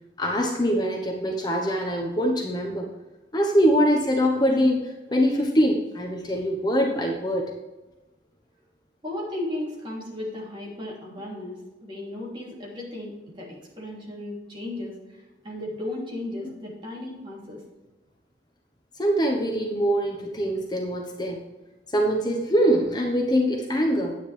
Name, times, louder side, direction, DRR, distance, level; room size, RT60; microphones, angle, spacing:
voice 1, 0.2-2.9 3.3-7.5 19.0-21.4 21.9-24.2, equal, 25° left, 1 dB, 1.1 m, -23 dB
voice 2, 9.0-17.6, left 1 dB, 30° right, -4 dB, 3.1 m, -35 dB
9.7 x 9.6 x 3.4 m, 1.1 s
head